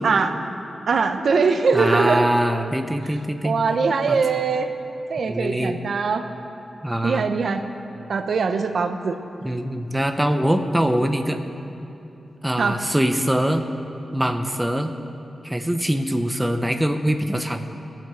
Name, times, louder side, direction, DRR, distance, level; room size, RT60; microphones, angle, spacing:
voice 1, 0.0-0.3 0.9-2.3 3.4-4.7 5.1-6.3 7.0-7.6 8.1-9.2 12.6-12.8, right 5 dB, 60° right, 6 dB, 0.9 m, -21 dB
voice 2, 1.7-3.6 4.1-4.2 5.3-5.8 6.8-7.2 9.4-11.4 12.4-13.6 14.1-14.9 15.4-17.7, equal, 5° right, 6 dB, 0.8 m, -23 dB
18.0 x 9.0 x 7.6 m, 2.9 s
wide cardioid pair, 175°, 0 cm